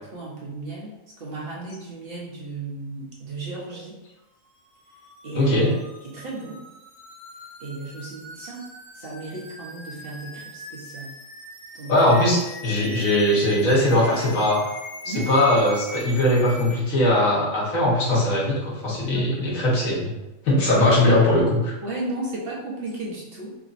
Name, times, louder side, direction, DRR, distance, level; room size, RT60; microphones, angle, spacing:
voice 1, 0.1-0.9 1.2-4.0 5.2-5.5 6.0-6.6 7.6-8.7 8.9-11.1 11.7-11.9 15.0-15.3 19.1-19.5 21.8-23.6, right 2 dB, 50° right, -5 dB, 1.0 m, -34 dB
sound 1, 4.5-16.8, left 1 dB, 25° left, 1.5 m, -41 dB
voice 2, 5.3-5.7 11.9-12.4 12.6-14.7 15.0-20.1 20.4-21.7, left 1 dB, 80° left, -4 dB, 1.5 m, -20 dB
4.9 x 2.8 x 2.5 m, 1.0 s
omnidirectional pair, 1.4 m